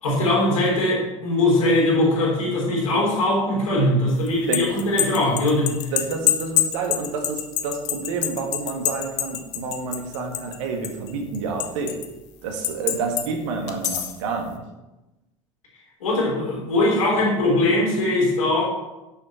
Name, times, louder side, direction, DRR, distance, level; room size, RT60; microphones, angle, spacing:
voice 1, 0.0-5.8 16.0-18.6, left 1 dB, 75° left, -4 dB, 3.7 m, -21 dB
sound 1, 4.3-10.6 10.8-12.1 12.6-13.3 13.7-14.2, left 12 dB, 60° left, 1.0 m, -25 dB
voice 2, 5.9-11.9 12.4-14.6, right 4 dB, 65° right, 3 dB, 1.7 m, -29 dB
10.5 x 6.6 x 4.4 m, 1.0 s
figure-of-eight pair, 70°, 18 cm